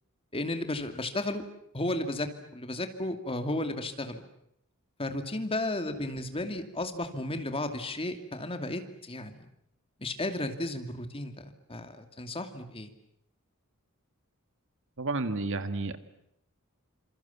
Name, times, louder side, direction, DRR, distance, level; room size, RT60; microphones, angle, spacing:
voice 1, 0.3-1.4 1.7-4.2 5.0-9.4 10.0-11.4 11.7-12.9, left 1 dB, 25° left, 7 dB, 2.4 m, -33 dB
voice 2, 15.0-16.0, right 3 dB, 60° right, 10 dB, 1.8 m, -31 dB
27.5 x 27.0 x 7.2 m, 0.78 s
head